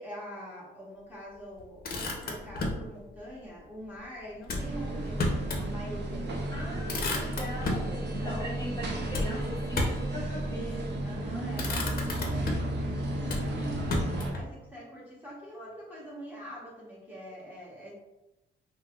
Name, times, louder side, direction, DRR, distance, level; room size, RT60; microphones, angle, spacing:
voice 1, 0.0-6.4 7.9-8.5 10.4-17.9, equal, 10° right, -6 dB, 0.9 m, -44 dB
Motor vehicle (road), 1.6-2.9 4.4-5.7 6.1-6.2 6.5-7.9 9.1-10.1 11.0-11.2 11.5-12.8 13.3-14.5, left 2 dB, 50° left, 0.6 m, -33 dB
sound 1, 4.6-14.3, right 1 dB, 60° right, 0.6 m, -33 dB
voice 2, 6.5-10.6, equal, 20° left, -4 dB, 0.9 m, -39 dB
3.3 x 2.1 x 2.3 m, 0.98 s
cardioid pair, 90°, 20 cm